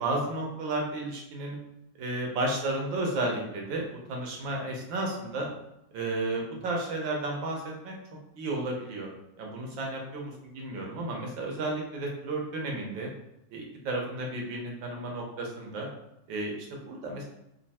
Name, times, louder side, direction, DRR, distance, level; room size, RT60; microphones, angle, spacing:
voice 1, 0.0-1.6 2.0-5.5 5.9-7.9 8.3-9.1 9.4-13.1 13.5-15.9 16.3-16.5 16.8-17.2, right 2 dB, 70° right, 0 dB, 1.6 m, -32 dB
4.2 x 2.7 x 4.2 m, 0.86 s
omnidirectional pair, 2.3 m